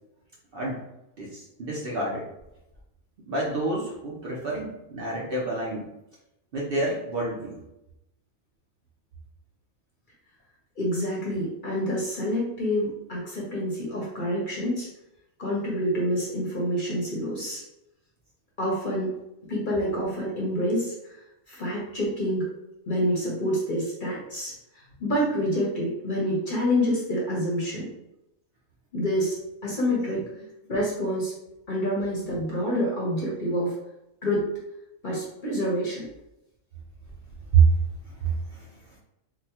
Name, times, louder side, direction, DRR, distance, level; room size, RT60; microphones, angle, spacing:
voice 1, 0.5-0.8 1.2-2.3 3.3-5.9 6.5-7.6 37.5-37.7 38.2-38.7, right 5 dB, 55° right, -4 dB, 0.7 m, -26 dB
voice 2, 10.8-14.9 15.4-17.6 18.6-19.1 19.5-21.2 21.5-22.5 22.9-24.5 25.0-27.9 28.9-29.4 29.6-30.2 30.7-31.3 31.7-33.7 34.2-34.4 35.0-36.1, equal, 45° left, -4 dB, 0.8 m, -27 dB
3.9 x 2.1 x 2.8 m, 0.88 s
omnidirectional pair, 1.4 m